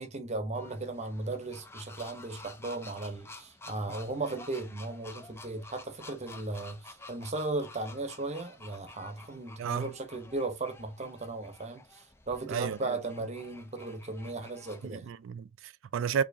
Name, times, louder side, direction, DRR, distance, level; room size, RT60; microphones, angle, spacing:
voice 1, 0.0-15.1, right 2 dB, 35° right, 0.8 m, -36 dB
sound 1, 0.5-14.9, left 2 dB, 10° left, 0.5 m, -51 dB
voice 2, 9.6-9.9 12.5-13.0 14.8-16.2, right 7 dB, 70° right, 0.3 m, -33 dB
4.5 x 2.8 x 2.6 m
head